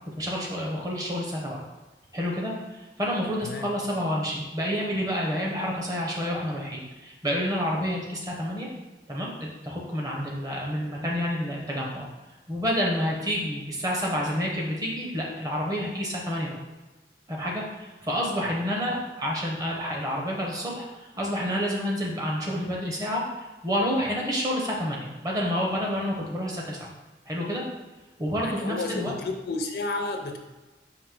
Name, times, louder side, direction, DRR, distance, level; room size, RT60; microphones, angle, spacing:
voice 1, 0.1-1.6 2.1-8.7 9.1-12.1 12.5-16.6 17.3-26.9 27.3-27.6 28.2-29.1, equal, 20° right, -2 dB, 0.7 m, -29 dB
voice 2, 3.4-3.7 28.4-30.4, left 2 dB, 60° left, 4 dB, 0.4 m, -32 dB
4.8 x 2.6 x 3.7 m, 1.1 s
head